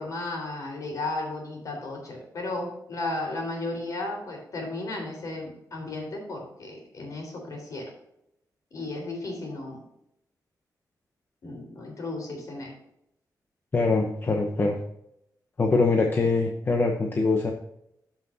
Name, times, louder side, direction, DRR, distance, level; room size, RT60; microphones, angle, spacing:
voice 1, 0.0-7.9 8.7-9.8 11.4-12.7, left 2 dB, 55° left, 1 dB, 3.7 m, -34 dB
voice 2, 13.7-14.8 15.6-17.5, left 3 dB, 30° left, 2 dB, 0.9 m, -23 dB
14.0 x 5.8 x 2.7 m, 0.77 s
wide cardioid pair, 155°, 7 cm